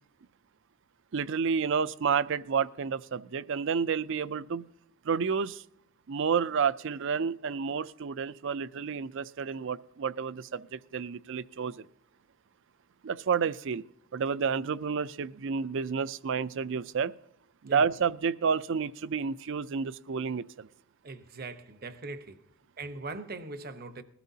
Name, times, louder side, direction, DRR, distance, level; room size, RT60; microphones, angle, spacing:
voice 1, 1.1-4.6 5.0-5.6 6.1-11.8 13.0-13.8 14.1-17.1 17.6-20.7, right 6 dB, 60° right, 0.4 m, -30 dB
voice 2, 21.0-22.5 22.8-24.0, right 3 dB, 45° right, 1.0 m, -41 dB
20.0 x 13.0 x 2.8 m
head